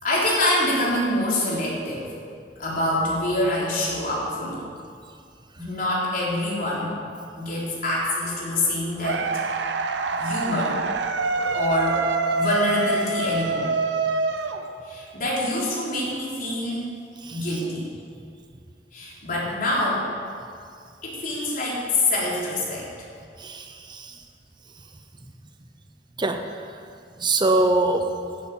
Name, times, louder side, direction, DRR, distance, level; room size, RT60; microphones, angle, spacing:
voice 1, 0.0-2.1 2.6-4.6 5.6-6.9 7.4-9.4 10.2-10.8 11.5-12.1 12.3-13.7 14.8-16.9 17.3-17.9 18.9-20.1 21.0-22.9, left 1 dB, 50° left, -5 dB, 3.8 m, -25 dB
sound 1, 9.0-15.1, right 3 dB, 80° right, 0.8 m, -26 dB
voice 2, 23.4-24.1 26.2-26.4 27.2-28.2, right 2 dB, 25° right, 6 dB, 0.6 m, -23 dB
11.0 x 8.6 x 8.7 m, 2.3 s
head